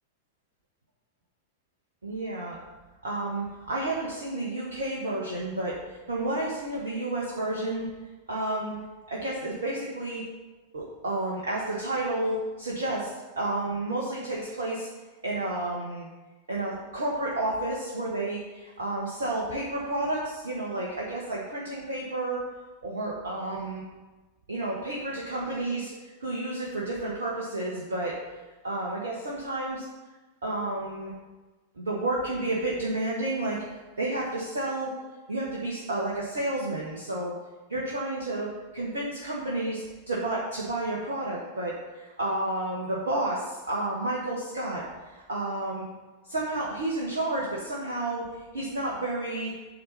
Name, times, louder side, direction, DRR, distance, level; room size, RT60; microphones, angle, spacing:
voice 1, 2.0-2.6 3.0-7.9 8.3-8.7 9.1-10.2 10.7-14.9 15.2-16.1 16.5-22.4 22.8-23.8 24.5-28.2 28.6-29.9 30.4-31.1 31.8-34.9 35.3-37.3 37.7-45.9 46.2-48.3 48.5-49.5, right 2 dB, 70° right, -5 dB, 1.5 m, -31 dB
8.5 x 4.3 x 6.8 m, 1.2 s
figure-of-eight pair, 90°, 0 cm